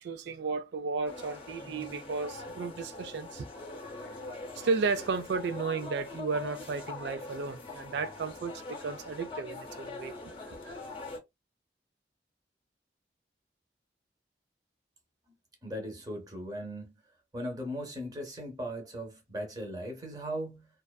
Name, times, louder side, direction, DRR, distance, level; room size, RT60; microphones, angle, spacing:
voice 1, 0.0-3.5 4.1-10.1 10.5-10.8, right 4 dB, 75° right, 0.3 m, -34 dB
sound 1, 1.0-11.2, left 3 dB, 30° left, 0.6 m, -43 dB
voice 2, 15.6-16.9 17.3-20.7, equal, 20° right, 0.7 m, -38 dB
2.4 x 2.3 x 2.2 m
head